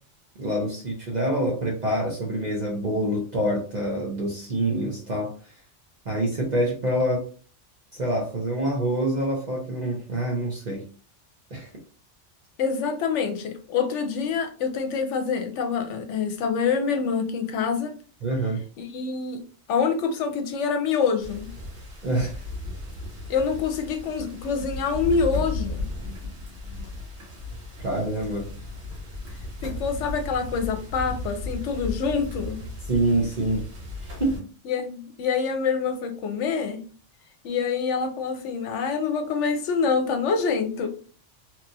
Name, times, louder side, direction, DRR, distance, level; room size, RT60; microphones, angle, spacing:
voice 1, 0.4-5.3 6.1-7.2 7.9-10.8 11.5-11.7 18.2-18.6 22.0-22.4 27.8-28.5 32.9-33.7 34.0-34.5, right 1 dB, 45° right, -2 dB, 0.7 m, -26 dB
voice 2, 12.6-18.0 18.8-21.5 23.3-25.9 29.6-32.6 34.6-36.9 37.4-40.9, left 5 dB, 75° left, 6 dB, 0.9 m, -26 dB
sound 1, 21.2-34.4, left 2 dB, 65° right, 1.3 m, -35 dB
3.0 x 2.4 x 2.6 m, 0.40 s
omnidirectional pair, 1.2 m